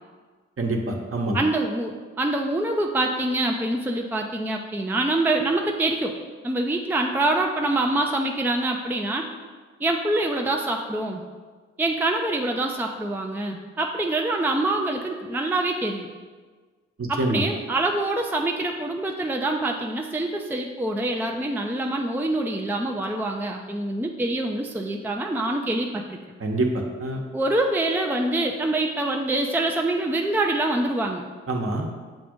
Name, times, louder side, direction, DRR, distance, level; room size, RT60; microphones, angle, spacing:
voice 1, 0.6-1.4 17.0-17.4 26.4-26.7 27.0-27.2 31.5-31.9, right 2 dB, 45° right, 1 dB, 1.1 m, -25 dB
voice 2, 1.3-6.2 6.4-9.3 9.8-11.2 11.8-16.1 17.1-26.2 27.3-31.2, right 2 dB, 5° right, 1 dB, 0.5 m, -25 dB
7.4 x 2.5 x 5.1 m, 1.5 s
supercardioid pair, 45°, 30 cm